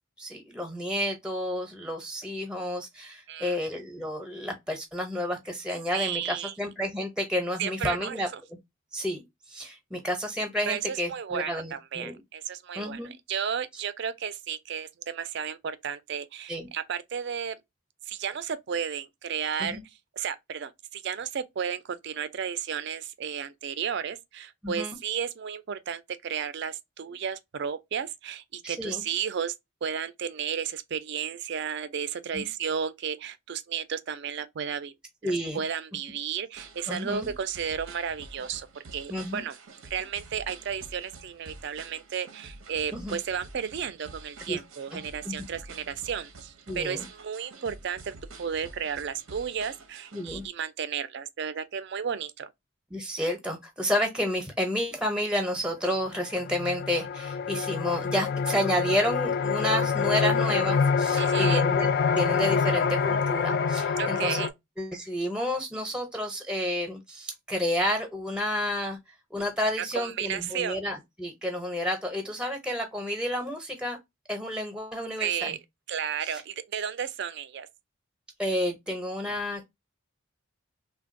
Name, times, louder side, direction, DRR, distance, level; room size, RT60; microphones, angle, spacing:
voice 1, 0.2-8.3 8.9-9.2 9.5-12.2 12.7-13.1 16.5-16.7 19.6-19.8 24.6-24.9 28.6-29.0 32.3-32.5 35.2-35.6 36.9-37.3 39.1-39.4 42.9-43.2 44.5-44.6 44.9-45.3 46.7-47.1 50.1-50.4 52.9-64.4 64.8-69.0 69.3-74.0 74.3-75.6 76.3-76.4 78.4-79.7, equal, 5° right, 0.6 m, -30 dB
voice 2, 3.3-3.6 5.9-6.5 7.6-8.4 10.7-17.6 18.1-19.8 20.1-29.5 29.8-34.9 35.2-39.6 39.9-52.5 61.2-61.6 64.0-64.5 69.8-70.8 75.2-75.6 75.9-77.7, right 7 dB, 60° right, 0.4 m, -33 dB
sound 1, 36.6-50.5, right 3 dB, 90° right, 0.7 m, -48 dB
sound 2, 55.5-55.6 56.1-64.5, left 5 dB, 50° left, 0.3 m, -26 dB
3.3 x 2.2 x 2.5 m
head